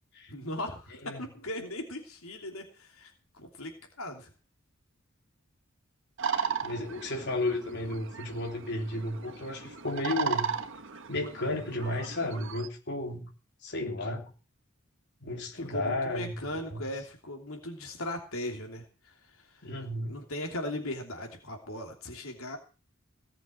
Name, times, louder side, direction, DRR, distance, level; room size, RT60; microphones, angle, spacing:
voice 1, 0.3-3.7 4.0-4.3 15.6-19.7 20.0-22.6, left 1 dB, 80° left, 3 dB, 3.0 m, -38 dB
sound 1, 6.2-12.7, right 6 dB, 65° right, 1.4 m, -36 dB
voice 2, 6.6-10.5 11.1-13.3 13.6-14.3 15.2-16.8 19.6-20.2, left 2 dB, 55° left, 1 dB, 3.4 m, -33 dB
18.0 x 7.0 x 7.8 m, 0.36 s
head